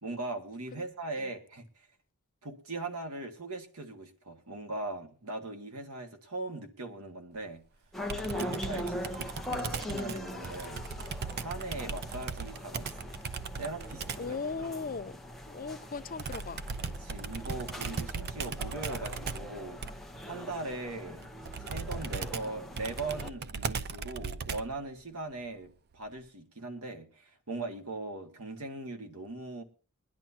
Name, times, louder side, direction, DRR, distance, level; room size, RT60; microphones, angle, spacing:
voice 1, 0.0-1.9 2.4-7.6 8.2-10.8 11.4-13.1 13.6-14.7 17.0-19.8 20.2-21.3 21.6-29.6, right 2 dB, 85° right, 1.9 m, -40 dB
sound 1, 7.9-23.3, left 1 dB, ahead, 0.8 m, -41 dB
Computer keyboard, 8.1-14.4 16.2-24.8, right 5 dB, 45° right, 0.5 m, -38 dB
voice 2, 14.2-15.2 15.5-16.6, left 4 dB, 40° left, 0.5 m, -38 dB
22.0 x 10.5 x 2.8 m
head